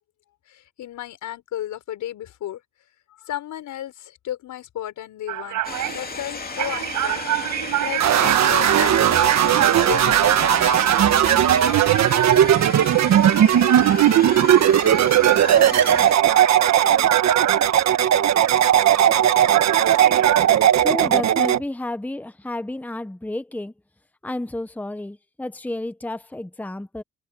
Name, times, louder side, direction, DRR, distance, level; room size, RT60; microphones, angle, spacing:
voice 1, 0.5-2.6 3.2-5.6 5.9-7.2 7.8-11.0, left 12 dB, 80° left, 5.8 m, -33 dB
sound 1, 5.3-19.3 19.5-20.5, right 14 dB, 85° right, 5.9 m, -28 dB
sound 2, 5.6-16.1, left 4 dB, 30° left, 2.7 m, -34 dB
sound 3, 8.0-21.6, right 10 dB, 65° right, 1.5 m, -17 dB
voice 2, 20.7-23.7 24.2-27.0, left 1 dB, 5° left, 1.1 m, -31 dB
cardioid pair, 90°, 30 cm